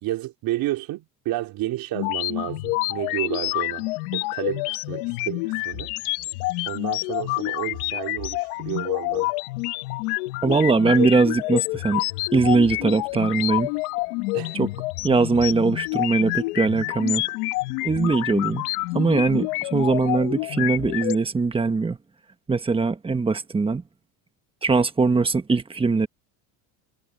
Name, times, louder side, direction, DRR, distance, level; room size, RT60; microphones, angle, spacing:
voice 1, 0.0-3.9 4.1-5.9 6.6-9.3 11.0-11.1 14.3-14.6, right 16 dB, 55° right, 3.5 m, -31 dB
sound 1, 1.9-21.2, left 22 dB, 85° left, 1.1 m, -28 dB
voice 2, 10.4-12.0 12.3-13.7 14.5-14.7 15.0-17.2 17.8-18.6 18.9-22.0 22.5-23.8 24.6-26.1, right 4 dB, 15° right, 1.3 m, -21 dB
cardioid pair, 135°, 43 cm